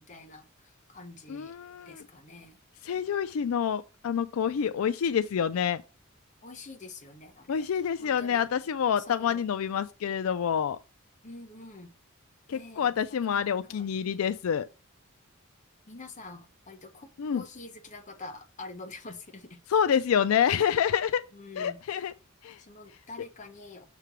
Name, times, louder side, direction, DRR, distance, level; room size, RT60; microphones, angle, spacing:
voice 1, 0.0-1.5 1.9-2.6 6.4-7.7 8.0-8.5 9.1-9.4 11.2-11.9 12.5-13.8 15.9-19.6 21.3-21.8 22.6-23.8, left 3 dB, 35° left, 1.0 m, -46 dB
voice 2, 1.3-2.0 2.8-5.8 7.5-10.8 12.5-14.7 17.2-17.4 19.7-21.2 21.6-22.1 22.4-22.6, left 8 dB, 80° left, 0.4 m, -27 dB
6.6 x 3.3 x 6.0 m
head